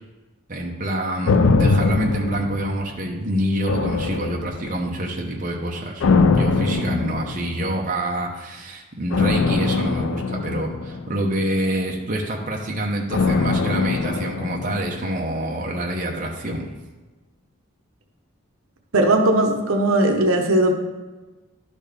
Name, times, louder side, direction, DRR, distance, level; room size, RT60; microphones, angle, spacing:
voice 1, 0.5-16.7, right 1 dB, 35° right, -1 dB, 0.8 m, -26 dB
sound 1, 1.3-3.2 3.7-4.9 6.0-7.7 9.1-11.5 13.1-15.3 15.6-15.7, left 4 dB, 65° left, 0.4 m, -22 dB
voice 2, 18.9-20.7, right 1 dB, 75° right, 3 dB, 0.9 m, -18 dB
11.0 x 4.2 x 3.5 m, 1.2 s
head